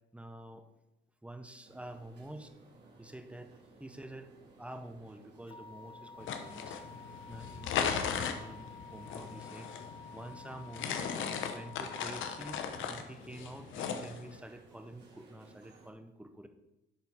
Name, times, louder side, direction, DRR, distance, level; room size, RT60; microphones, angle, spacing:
voice 1, 0.1-0.6 1.2-2.5 3.0-4.3 4.6-6.8 7.3-9.7 10.1-11.2 11.5-16.5, right 1 dB, 5° right, 7 dB, 0.7 m, -48 dB
sound 1, 1.6-15.9, right 3 dB, 60° right, 2.0 m, -59 dB
futuristic machine, 5.5-12.7, left 4 dB, 25° left, 0.4 m, -51 dB
sound 2, 6.2-14.4, left 7 dB, 80° left, 0.8 m, -38 dB
10.5 x 4.4 x 3.7 m, 0.94 s
cardioid pair, 90°, 20 cm